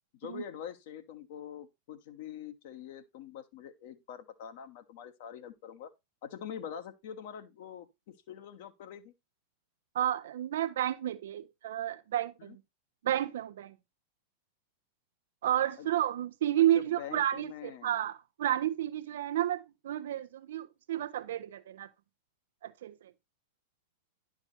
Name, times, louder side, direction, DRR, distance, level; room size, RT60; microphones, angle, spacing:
voice 1, 0.1-5.9 6.2-9.1 12.4-12.6 15.8-15.9 16.7-18.0, left 9 dB, 50° left, 1.1 m, -45 dB
voice 2, 9.9-12.6 13.0-13.7 15.4-21.9 22.6-23.1, right 12 dB, 60° right, 0.6 m, -31 dB
10.5 x 4.7 x 4.1 m
figure-of-eight pair, 90°, 0 cm